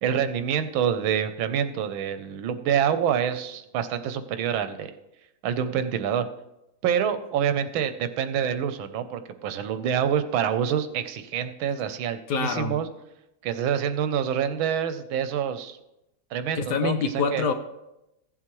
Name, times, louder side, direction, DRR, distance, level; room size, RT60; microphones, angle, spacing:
voice 1, 0.0-4.9 5.4-6.3 6.8-12.9 13.4-15.8 16.3-17.4, right 8 dB, 85° right, 10 dB, 1.5 m, -26 dB
voice 2, 12.3-12.8 16.5-17.5, left 5 dB, 65° left, 6 dB, 1.1 m, -26 dB
15.5 x 7.5 x 3.1 m, 0.90 s
omnidirectional pair, 2.2 m